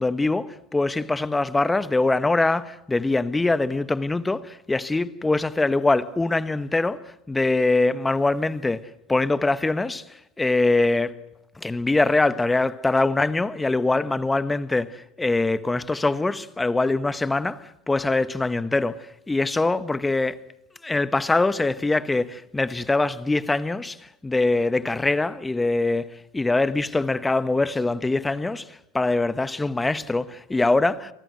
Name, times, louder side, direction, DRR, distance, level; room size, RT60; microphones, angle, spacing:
voice 1, 0.0-10.0 10.4-11.2 11.6-20.3 20.8-31.1, left 2 dB, 10° left, 1.2 m, -23 dB
29.5 x 24.5 x 7.9 m
hypercardioid pair, 90°, 0 cm